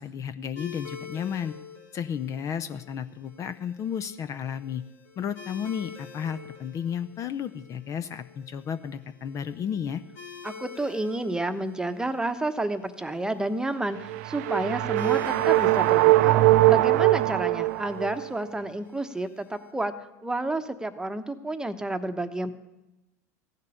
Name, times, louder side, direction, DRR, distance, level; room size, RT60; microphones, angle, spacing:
voice 1, 0.0-1.5 1.9-4.8 5.2-10.0, left 8 dB, 40° left, 12 dB, 0.7 m, -33 dB
sound 1, 0.6-19.7, left 6 dB, 75° left, 4.7 m, -48 dB
voice 2, 10.4-16.4 16.7-19.9 20.2-22.5, right 2 dB, 10° right, 9 dB, 1.1 m, -30 dB
sound 2, 14.0-18.3, right 17 dB, 70° right, 0.6 m, -21 dB
15.0 x 6.7 x 9.9 m, 0.97 s
hypercardioid pair, 90°, 9 cm